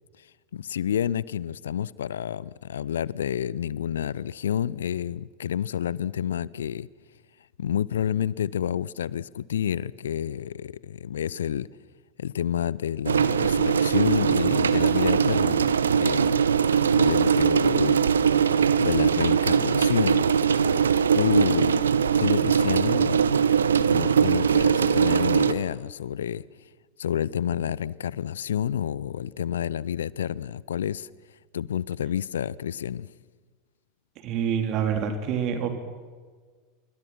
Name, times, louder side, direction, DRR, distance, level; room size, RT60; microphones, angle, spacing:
voice 1, 0.5-6.9 7.6-11.7 12.2-16.4 16.9-18.1 18.8-20.2 21.1-21.8 22.2-23.4 23.9-26.4 27.0-31.1 31.5-33.1, left 9 dB, 70° left, 0.6 m, -29 dB
sound 1, 13.1-25.5, right 7 dB, 75° right, 0.9 m, -21 dB
voice 2, 34.2-35.8, right 7 dB, 45° right, 3.7 m, -26 dB
27.0 x 24.0 x 6.0 m
figure-of-eight pair, 80°, 0 cm